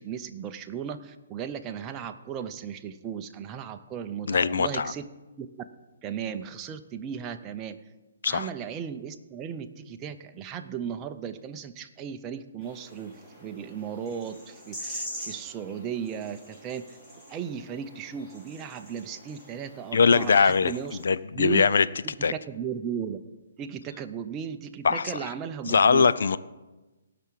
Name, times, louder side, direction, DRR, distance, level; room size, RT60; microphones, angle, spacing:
voice 1, 0.0-5.0 5.4-5.5 6.0-7.8 8.3-16.9 17.3-21.0 21.3-21.6 22.0-23.2 23.6-26.1, right 8 dB, 15° right, 6 dB, 0.7 m, -36 dB
voice 2, 4.3-4.9 8.2-8.5 19.9-20.7 21.0-21.8 22.2-22.3 24.8-25.1 25.6-26.4, left 5 dB, 70° left, 15 dB, 0.6 m, -21 dB
sound 1, 12.6-21.1, equal, 10° left, 4.9 m, -44 dB
17.5 x 5.9 x 7.6 m, 1.1 s
hypercardioid pair, 160°, 0 cm